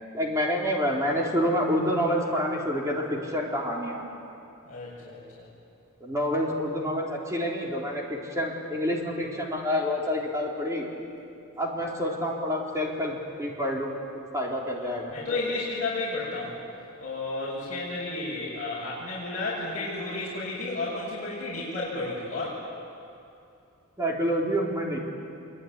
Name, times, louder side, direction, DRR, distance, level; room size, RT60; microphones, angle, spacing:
voice 1, 0.1-4.0 6.0-10.9 11.6-13.9 14.3-15.1 24.0-25.0, equal, 15° right, -2 dB, 4.0 m, -28 dB
voice 2, 4.6-5.5 14.8-16.6 17.0-22.6, left 2 dB, 35° left, -8 dB, 6.9 m, -32 dB
24.5 x 23.5 x 9.7 m, 2.6 s
head